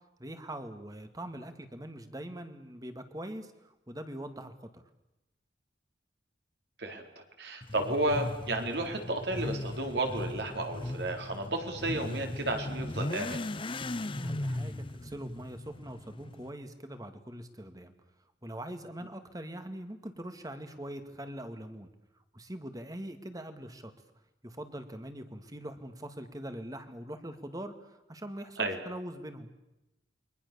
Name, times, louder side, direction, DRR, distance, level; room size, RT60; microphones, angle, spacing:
voice 1, 0.2-3.5 3.9-4.8 14.1-17.9 18.4-21.9 22.3-23.9 24.4-29.5, right 1 dB, 20° right, 8 dB, 2.1 m, -42 dB
voice 2, 7.4-13.5 28.6-28.8, right 2 dB, 60° right, 4 dB, 4.1 m, -32 dB
Motorcycle / Accelerating revving vroom, 7.6-16.5, left 1 dB, 30° left, 0.8 m, -37 dB
29.0 x 23.5 x 7.0 m, 0.93 s
head